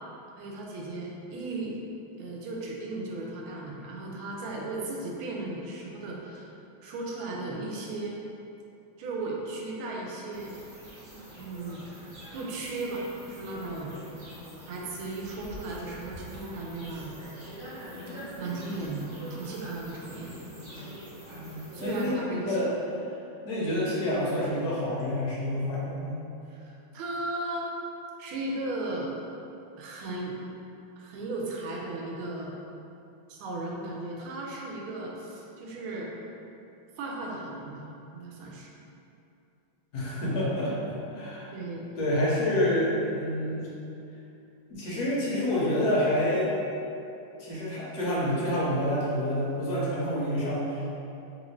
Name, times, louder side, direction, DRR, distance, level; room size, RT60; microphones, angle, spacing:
voice 1, 0.4-1.7 2.2-6.5 6.8-8.2 9.0-10.6 11.4-11.8 12.3-13.9 14.7-17.1 18.4-20.4 21.7-22.7 26.5-27.7 28.2-29.1 29.8-30.4 31.0-32.5 33.3-36.1 37.0-37.9 38.1-38.7 41.5-41.9, right 2 dB, 90° right, -2 dB, 1.5 m, -36 dB
Pag Starigrad sheep crickets birds seagull ppl, 10.3-22.1, equal, 60° right, 1.6 m, -44 dB
voice 2, 21.3-22.7 23.4-26.2 39.9-41.6 42.0-43.7 44.7-46.5 47.4-50.9, left 1 dB, 65° left, -7 dB, 1.1 m, -28 dB
3.4 x 2.5 x 3.0 m, 2.7 s
omnidirectional pair, 2.2 m